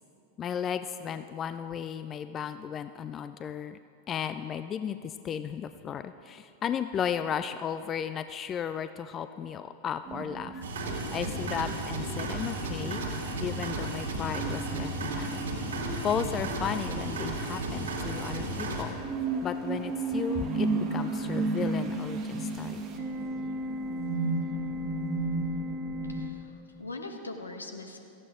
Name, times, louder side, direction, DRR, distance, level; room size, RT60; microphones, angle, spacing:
voice 1, 0.4-3.8 4.1-10.6 11.1-13.0 13.4-15.4 16.0-19.0 19.4-22.8, left 8 dB, 25° left, 11 dB, 0.4 m, -34 dB
sound 1, 10.1-26.3, right 2 dB, 35° right, 1.5 m, -34 dB
sound 2, 10.6-18.8, right 2 dB, 65° right, 2.2 m, -34 dB
voice 2, 26.0-28.0, left 2 dB, 80° left, 5 dB, 1.2 m, -41 dB
17.5 x 14.5 x 3.7 m, 2.8 s
figure-of-eight pair, 90°, 0 cm